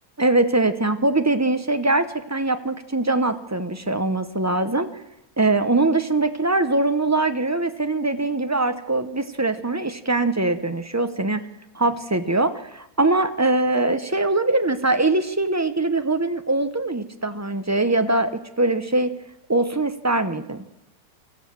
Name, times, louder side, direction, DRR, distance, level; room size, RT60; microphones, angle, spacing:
voice 1, 0.2-4.9 5.4-11.5 11.7-19.1 19.5-20.6, right 2 dB, 25° right, 9 dB, 0.3 m, -22 dB
24.5 x 14.5 x 7.4 m, 0.88 s
omnidirectional pair, 1.9 m